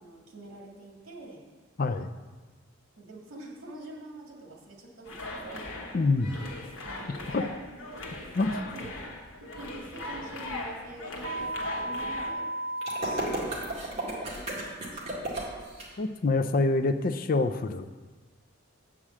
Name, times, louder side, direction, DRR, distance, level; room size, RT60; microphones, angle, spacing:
voice 1, 0.0-1.5 3.0-5.8 6.3-6.4 6.8-7.5 8.5-9.0 9.4-12.5 13.0-15.2, right 2 dB, 80° right, -1 dB, 2.0 m, -46 dB
voice 2, 1.8-2.1 5.9-6.4 7.3-7.4 8.3-8.7 16.0-17.9, left 3 dB, 40° left, 8 dB, 0.4 m, -26 dB
sound 1, 5.1-12.3, left 2 dB, 70° left, 1.3 m, -39 dB
sound 2, 11.2-13.2, right 1 dB, 50° right, 0.9 m, -33 dB
sound 3, 12.8-15.8, right 1 dB, 30° right, 2.1 m, -33 dB
8.6 x 4.9 x 7.3 m, 1.3 s
head